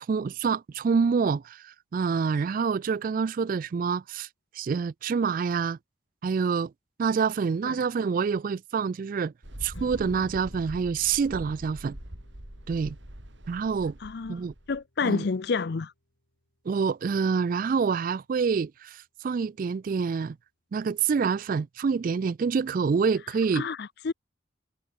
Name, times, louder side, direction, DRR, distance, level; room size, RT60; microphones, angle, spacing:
voice 1, 0.0-4.3 4.5-5.8 6.2-6.7 7.0-9.3 9.6-12.0 12.7-13.0 13.5-13.9 14.3-14.5 15.0-15.2 16.7-20.4 20.7-23.7, right 5 dB, 45° right, 0.3 m, -27 dB
Mechanical fan, 9.4-14.8, right 1 dB, 70° right, 3.9 m, -43 dB
Strum, 9.7-16.0, left 1 dB, 80° left, 7.2 m, -54 dB
voice 2, 14.0-14.3 14.7-15.9 23.5-24.1, left 4 dB, 55° left, 0.5 m, -29 dB
head